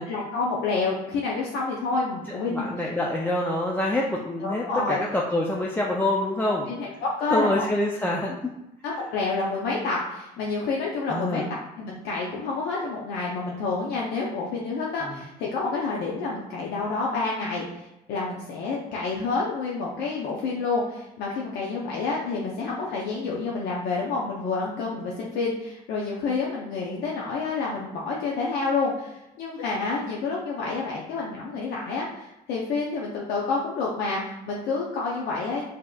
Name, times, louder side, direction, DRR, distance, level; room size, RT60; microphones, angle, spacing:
voice 1, 0.0-2.7 4.4-5.0 6.7-7.6 8.8-17.8 18.1-35.7, left 3 dB, 85° left, -3 dB, 0.6 m, -28 dB
voice 2, 2.3-6.7 7.3-8.5 11.1-11.5 15.0-15.2, left 1 dB, 10° left, -3 dB, 0.4 m, -26 dB
5.0 x 2.8 x 2.3 m, 0.90 s
cardioid pair, 110°, 17 cm